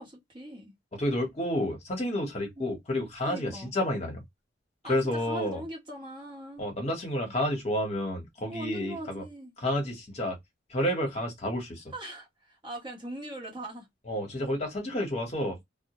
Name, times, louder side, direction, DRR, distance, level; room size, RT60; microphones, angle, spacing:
voice 1, 0.0-0.7 2.6-2.7 3.2-3.7 4.8-6.7 8.5-9.5 11.9-13.9, right 1 dB, 25° right, 1.0 m, -41 dB
voice 2, 0.9-4.2 4.9-5.6 6.6-9.2 9.6-10.4 10.7-11.8 14.1-15.6, left 1 dB, 35° left, 0.9 m, -30 dB
2.1 x 2.1 x 2.8 m
head